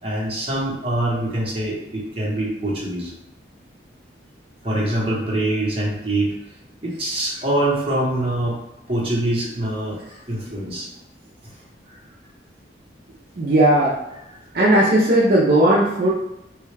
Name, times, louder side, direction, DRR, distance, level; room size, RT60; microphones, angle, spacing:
voice 1, 0.0-3.1 4.6-6.3 6.8-8.6 8.9-10.0 10.3-10.9, right 1 dB, 30° right, -5 dB, 0.9 m, -24 dB
voice 2, 13.4-13.9 14.5-16.1, right 1 dB, 55° right, -6 dB, 0.6 m, -16 dB
3.1 x 2.3 x 3.2 m, 0.90 s
head